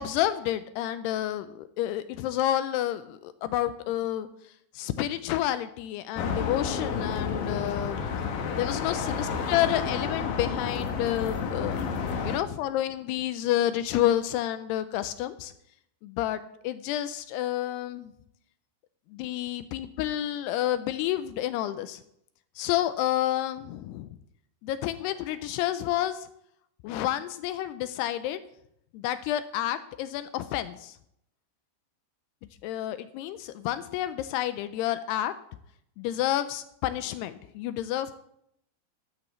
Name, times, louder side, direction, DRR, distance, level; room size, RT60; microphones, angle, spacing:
voice 1, 0.0-4.3 4.7-8.1 8.6-11.8 12.2-15.5 16.0-18.1 19.1-22.0 22.6-24.1 24.6-26.3 26.8-28.4 28.9-31.0 32.6-35.3 36.0-38.2, left 12 dB, 85° left, 12 dB, 2.4 m, -29 dB
sound 1, 6.2-12.4, left 5 dB, 70° left, 2.4 m, -30 dB
13.0 x 12.5 x 3.1 m, 0.73 s
omnidirectional pair, 5.2 m